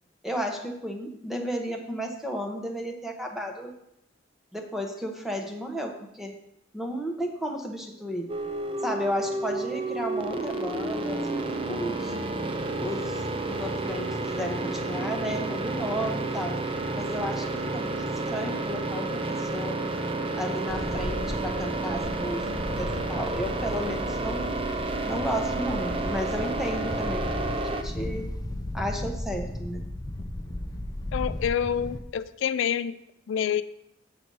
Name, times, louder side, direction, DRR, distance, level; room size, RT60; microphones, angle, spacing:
voice 1, 0.2-3.7 4.5-6.3 6.7-8.3 8.8-12.1 12.8-13.2 13.5-16.5 16.9-18.0 18.3-19.8 20.4-22.5 22.8-24.5 25.1-28.3 28.7-29.9, equal, ahead, 3 dB, 0.8 m, -33 dB
sound 1, 8.3-27.8, right 2 dB, 30° right, 0.5 m, -31 dB
Wind, 20.7-32.0, left 1 dB, 20° left, 0.5 m, -35 dB
voice 2, 31.1-33.0 33.3-33.6, left 8 dB, 80° left, 14 dB, 0.3 m, -27 dB
7.7 x 4.0 x 6.2 m, 0.82 s
head